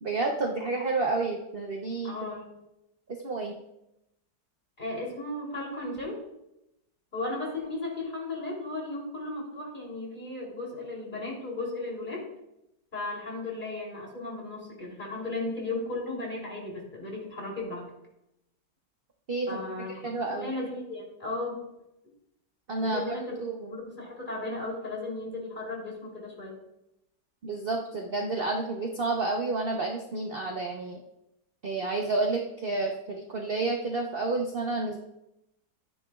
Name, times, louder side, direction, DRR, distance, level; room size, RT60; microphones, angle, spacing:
voice 1, 0.0-2.1 3.1-3.5 19.3-19.6 20.0-20.5 22.7-23.8 27.4-31.0 31.6-35.0, right 3 dB, 40° right, 1 dB, 0.9 m, -30 dB
voice 2, 2.0-2.5 4.8-6.2 7.1-12.3 12.9-17.8 19.5-21.6 22.8-23.4 23.7-26.6, left 2 dB, 25° left, -3 dB, 3.4 m, -35 dB
14.0 x 9.7 x 2.4 m, 0.85 s
omnidirectional pair, 1.9 m